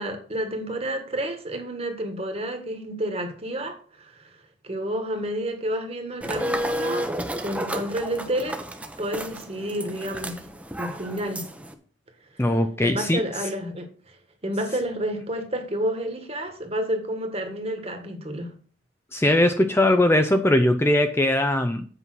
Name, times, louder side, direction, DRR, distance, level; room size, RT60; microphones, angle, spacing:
voice 1, 0.0-4.4 4.6-7.1 7.4-8.6 9.0-10.4 10.8-11.5 12.8-14.2 14.4-18.5, right 1 dB, 30° right, 1.6 m, -30 dB
sound 1, 6.2-11.7, equal, 5° right, 0.8 m, -32 dB
voice 2, 12.4-13.2 19.1-21.8, left 1 dB, 15° left, 0.5 m, -20 dB
8.2 x 5.6 x 6.1 m
head